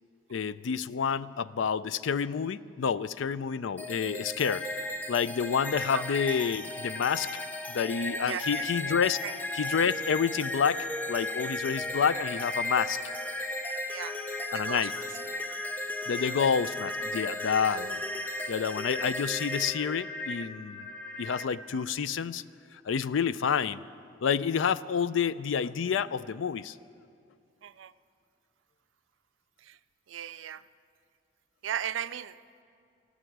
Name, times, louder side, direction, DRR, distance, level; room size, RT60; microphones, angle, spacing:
voice 1, 0.3-4.6 5.1-7.3 7.7-9.2 9.5-13.0 14.5-14.9 16.1-18.0 18.5-20.9 21.2-22.4 22.9-23.8 24.2-26.8, left 7 dB, 90° left, 17 dB, 0.4 m, -29 dB
sound 1, 3.8-21.4, left 1 dB, 10° left, 0.7 m, -35 dB
voice 2, 8.3-8.7 9.2-9.3 13.9-14.2 14.5-15.1 16.2-16.3 27.6-27.9 29.6-29.8 30.1-30.6 31.6-32.4, right 9 dB, 90° right, 15 dB, 0.4 m, -36 dB
19.5 x 14.0 x 4.7 m, 2.4 s
head